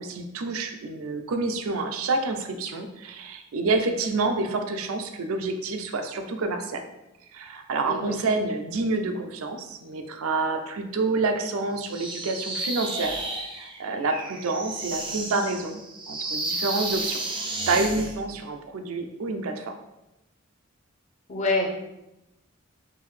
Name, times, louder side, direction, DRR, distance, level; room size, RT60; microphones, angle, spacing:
voice 1, 0.0-6.8 7.3-15.8 16.1-17.2 17.7-19.7, right 3 dB, 85° right, 6 dB, 0.4 m, -28 dB
voice 2, 7.8-8.2 21.3-21.7, left 2 dB, 35° left, -1 dB, 0.6 m, -26 dB
sound 1, 11.8-18.2, right 2 dB, 25° right, 0.4 m, -32 dB
3.6 x 2.6 x 3.2 m, 0.94 s
head